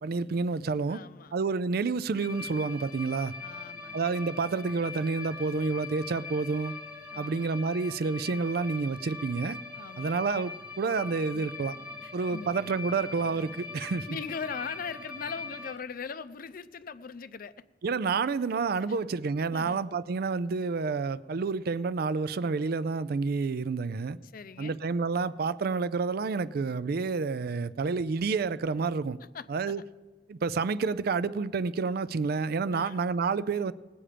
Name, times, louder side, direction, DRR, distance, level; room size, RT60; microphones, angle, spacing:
voice 1, 0.0-1.0 1.3-3.3 3.9-6.7 7.2-9.6 10.0-11.8 12.1-14.1 17.8-24.2 24.6-29.2 29.5-29.8 30.3-33.7, right 4 dB, 60° right, 17 dB, 0.4 m, -29 dB
voice 2, 0.9-1.3 3.4-4.2 7.1-7.5 9.7-10.2 12.0-12.6 14.1-17.5 19.5-19.8 24.2-24.8 29.3-29.7 32.7-33.0, left 6 dB, 55° left, 14 dB, 0.5 m, -40 dB
sound 1, 2.1-15.7, left 4 dB, 10° right, 1.0 m, -42 dB
19.0 x 8.6 x 5.0 m, 1.3 s
head